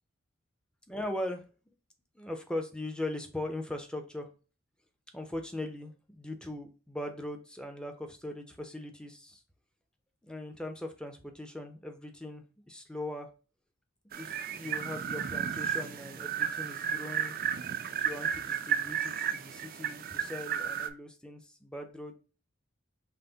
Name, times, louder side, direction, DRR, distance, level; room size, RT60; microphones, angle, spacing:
voice 1, 0.9-1.7 2.1-4.3 5.1-9.4 10.2-13.3 14.1-17.4 17.9-22.2, left 1 dB, 5° left, 5 dB, 0.6 m, -40 dB
sound 1, 14.1-20.9, right 8 dB, 45° right, 0.4 m, -33 dB
5.6 x 2.1 x 3.9 m, 0.35 s
head